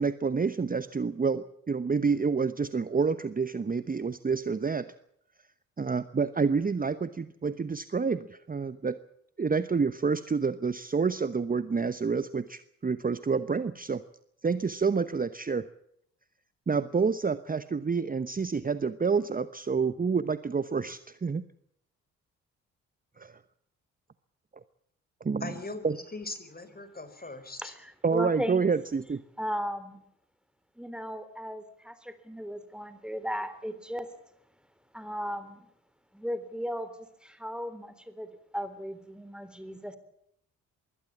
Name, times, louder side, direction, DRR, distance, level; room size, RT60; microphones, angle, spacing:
voice 1, 0.0-4.9 5.8-9.0 9.4-14.0 14.4-15.7 16.7-21.4 23.2-23.4 25.2-25.5 25.8-26.0 28.0-29.2, right 5 dB, 25° right, 14 dB, 1.0 m, -28 dB
voice 2, 25.4-27.7, left 3 dB, 25° left, 11 dB, 4.6 m, -40 dB
voice 3, 27.6-28.6 29.4-30.0 30.8-34.1 34.9-35.7 36.1-40.0, equal, ahead, 12 dB, 3.7 m, -36 dB
22.5 x 17.0 x 7.3 m, 0.72 s
hypercardioid pair, 45°, 38 cm